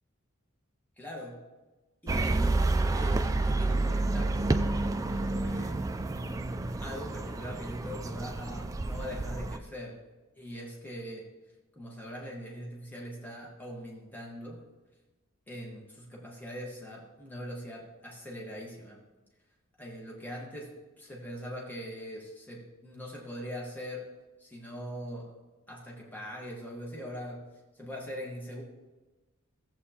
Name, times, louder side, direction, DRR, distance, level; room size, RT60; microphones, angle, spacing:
voice 1, 1.0-1.4 2.0-2.5 2.9-5.8 6.8-10.0 10.4-11.3 11.7-14.6 15.5-19.0 19.8-20.7 21.0-24.1 24.4-25.3 25.7-27.4 27.8-28.6, equal, 10° left, -3 dB, 1.4 m, -42 dB
sound 1, 2.1-9.6, right 2 dB, 15° right, 0.3 m, -29 dB
14.5 x 7.7 x 2.9 m, 1.2 s
head